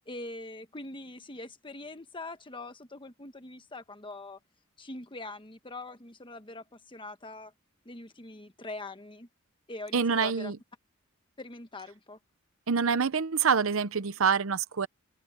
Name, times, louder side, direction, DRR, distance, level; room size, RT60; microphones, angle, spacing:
voice 1, 0.1-4.4 4.8-7.5 7.8-9.3 9.7-10.5 11.4-12.2, left 2 dB, 25° left, 1.3 m, -43 dB
voice 2, 9.9-10.6 12.7-14.9, right 6 dB, 70° right, 0.7 m, -26 dB
head